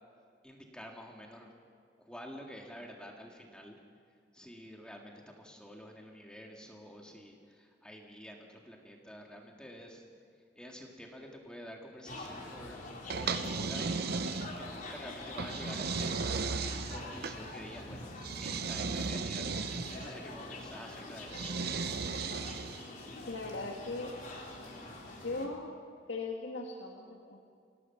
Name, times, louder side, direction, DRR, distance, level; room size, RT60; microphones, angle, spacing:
voice 1, 0.4-1.5 2.0-3.8 4.3-10.1 10.6-14.1 14.6-16.4 16.9-18.1 18.4-21.5, equal, 5° left, 0 dB, 1.9 m, -49 dB
sound 1, 12.1-25.5, left 2 dB, 45° left, 3.5 m, -45 dB
sound 2, 13.1-14.8 15.4-17.4 18.2-20.1 21.3-22.9, right 4 dB, 60° right, 0.7 m, -35 dB
voice 2, 23.3-24.1 25.0-25.8 26.1-27.4, left 3 dB, 85° left, -1 dB, 1.9 m, -39 dB
26.0 x 18.0 x 5.9 m, 2.2 s
head